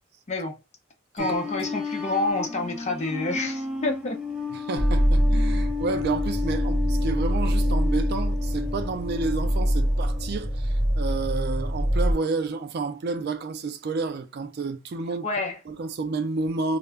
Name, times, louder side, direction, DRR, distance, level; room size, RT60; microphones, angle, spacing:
voice 1, 0.3-0.6 1.1-4.2 15.2-15.6, left 2 dB, 35° left, 0.6 m, -28 dB
sound 1, 1.2-10.6 11.1-11.4, left 5 dB, 5° right, 0.6 m, -33 dB
voice 2, 4.5-15.3 15.7-16.8, right 4 dB, 50° right, 0.3 m, -30 dB
sound 2, 4.8-12.1, equal, 35° right, 0.9 m, -24 dB
2.2 x 2.1 x 3.3 m
head